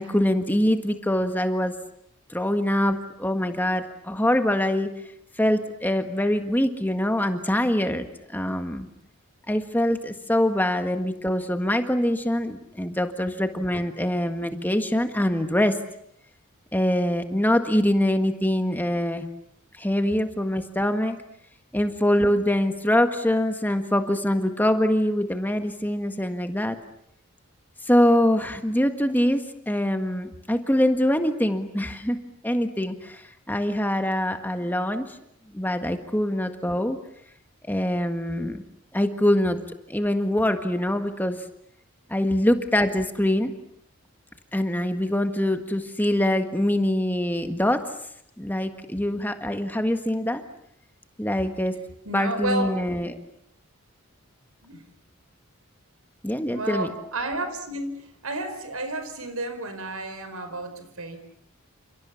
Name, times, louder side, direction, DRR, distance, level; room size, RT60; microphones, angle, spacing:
voice 1, 0.0-1.8 2.3-4.9 5.4-8.9 9.5-15.8 16.7-19.2 19.8-21.2 21.7-26.8 27.8-32.2 32.4-35.2 35.5-37.0 37.6-38.6 38.9-41.5 42.1-43.6 44.5-47.9 48.4-50.4 51.2-51.8 52.1-53.2 56.2-56.9, left 1 dB, 10° left, 7 dB, 1.6 m, -24 dB
voice 2, 52.0-52.7 54.6-54.8 56.5-61.2, right 2 dB, 80° right, 9 dB, 4.9 m, -31 dB
29.5 x 27.5 x 7.1 m, 0.70 s
head